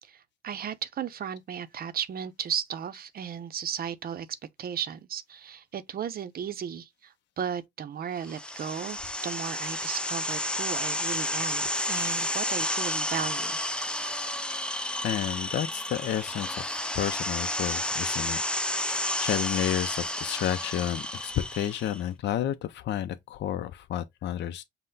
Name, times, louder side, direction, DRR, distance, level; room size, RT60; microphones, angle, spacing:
voice 1, 0.0-4.3 4.6-13.6, right 8 dB, 50° right, 0.6 m, -35 dB
sound 1, 8.2-22.0, left 1 dB, 5° left, 0.4 m, -31 dB
voice 2, 15.0-18.4 18.9-24.6, left 11 dB, 60° left, 0.5 m, -31 dB
5.5 x 2.1 x 3.8 m
cardioid pair, 90°, 20 cm